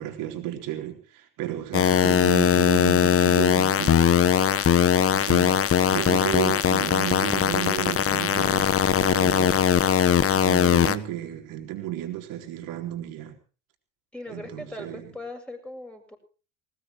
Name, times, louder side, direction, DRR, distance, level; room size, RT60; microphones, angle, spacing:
voice 1, 0.0-4.1 5.1-9.7 10.3-13.4 14.3-15.1, right 13 dB, 70° right, 4 dB, 4.0 m, -33 dB
sound 1, 1.7-11.0, left 9 dB, 40° left, 1.2 m, -20 dB
voice 2, 14.1-16.2, left 1 dB, 5° left, 3 dB, 7.1 m, -39 dB
19.5 x 19.5 x 3.1 m, 0.38 s
hypercardioid pair, 60°, 34 cm